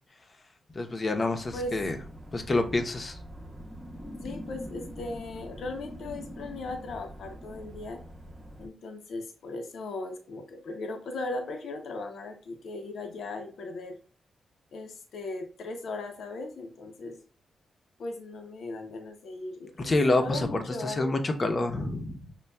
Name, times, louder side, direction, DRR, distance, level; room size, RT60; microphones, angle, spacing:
voice 1, 0.7-2.0 2.3-3.2 19.8-22.2, left 2 dB, 40° left, 6 dB, 0.6 m, -27 dB
sound 1, 1.4-8.7, equal, 20° right, 0.6 m, -44 dB
voice 2, 4.2-8.0 8.6-14.0 14.7-17.2 18.0-21.1, left 2 dB, 75° left, 4 dB, 0.6 m, -38 dB
5.4 x 2.2 x 2.2 m, 0.38 s
cardioid pair, 80°, 0 cm